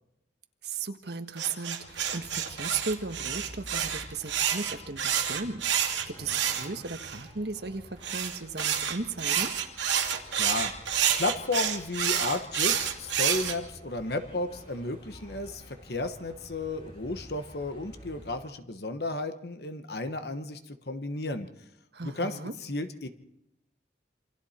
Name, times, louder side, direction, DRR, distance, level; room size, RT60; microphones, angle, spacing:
voice 1, 0.6-9.5 21.9-22.5, right 4 dB, 65° right, 7 dB, 1.5 m, -36 dB
sound 1, 1.4-7.2 8.0-13.5, right 9 dB, 85° right, 2.5 m, -28 dB
sound 2, 1.8-18.3, equal, 30° left, 5.5 m, -50 dB
voice 2, 10.4-10.7 11.2-21.5 22.0-23.1, left 2 dB, 60° left, 9 dB, 1.2 m, -33 dB
27.5 x 25.5 x 4.4 m, 0.83 s
head